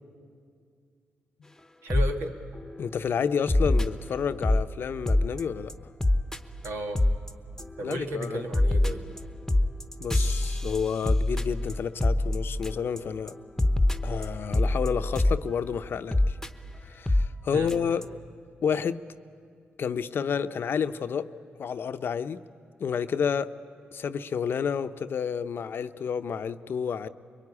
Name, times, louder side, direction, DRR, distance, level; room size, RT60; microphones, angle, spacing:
voice 1, 1.8-2.3 6.6-7.0 7.8-9.1 17.5-17.7, right 1 dB, 85° right, 3 dB, 1.8 m, -33 dB
sound 1, 1.9-2.1 2.5-2.8 3.5-4.7 5.1-5.4 5.7-5.8 6.0-6.4 6.6-6.7 6.9-7.3 7.6-7.9 8.2-13.0 13.3-13.4 13.6-15.4 16.1-16.5 17.1-17.3 17.7-17.8 18.0-18.1, left 1 dB, 10° left, 1.0 m, -24 dB
voice 2, 2.8-5.7 7.8-8.5 10.0-13.3 14.0-16.4 16.8-18.1 18.6-19.0 19.8-21.3 21.6-22.4 22.8-23.5 23.9-27.1, left 7 dB, 65° left, 11 dB, 0.7 m, -30 dB
23.0 x 21.5 x 9.8 m, 2.3 s
cardioid pair, 65°, 4 cm